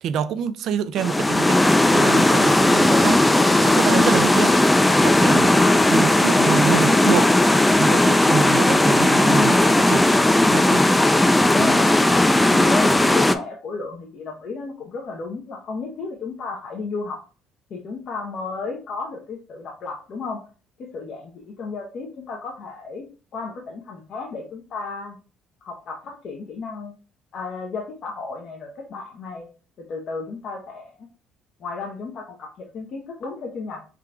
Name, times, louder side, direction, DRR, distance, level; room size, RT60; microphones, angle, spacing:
voice 1, 0.0-1.6 1.8-3.2 3.6-4.5 5.0-5.5 5.9-7.3 7.8-10.0 10.4-10.8, right 8 dB, 65° right, 0.4 m, -26 dB
sound 1, 1.0-13.3, left 1 dB, 10° left, 0.4 m, -17 dB
voice 2, 3.9-4.3 5.4-5.9 9.3-9.7 11.5-12.0 12.5-17.2 17.7-20.4 20.8-23.1 23.3-25.2 25.6-27.0 27.3-29.5 29.8-31.1 31.6-33.8, left 4 dB, 55° left, 0.8 m, -33 dB
3.7 x 2.4 x 4.4 m
cardioid pair, 100°, 0 cm